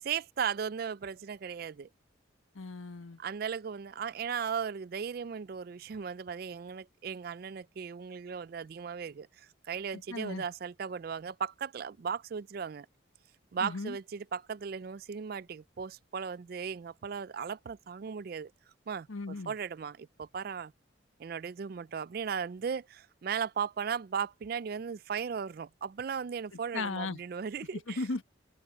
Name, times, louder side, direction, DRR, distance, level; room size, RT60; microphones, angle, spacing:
voice 1, 0.0-1.9 3.2-12.9 13.5-18.5 18.9-20.7 21.2-28.1, right 6 dB, 50° right, 0.3 m, -37 dB
voice 2, 2.5-3.2 9.9-10.4 13.6-14.0 19.1-19.5 26.7-27.2 27.9-28.2, left 3 dB, 85° left, 1.3 m, -36 dB
open air
head